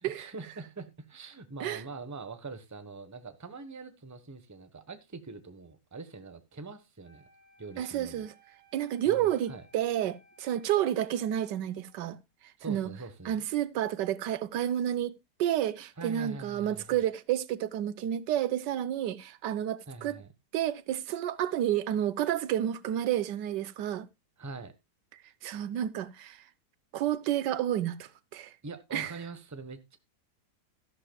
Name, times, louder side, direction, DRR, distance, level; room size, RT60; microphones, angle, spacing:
voice 1, 0.0-7.3 7.6-8.3 9.1-9.6 12.6-13.4 16.0-17.0 19.9-20.3 24.4-24.7 28.6-30.0, right 3 dB, 10° right, 0.9 m, -43 dB
Wind instrument woodwind instrument, 7.0-12.1, right 1 dB, 40° left, 4.8 m, -62 dB
voice 2, 7.8-8.3 8.7-12.2 12.7-12.9 13.2-20.2 20.5-24.1 25.1-26.4 26.9-28.5 28.9-29.1, right 11 dB, 85° right, 1.4 m, -30 dB
13.5 x 12.0 x 2.2 m
omnidirectional pair, 1.8 m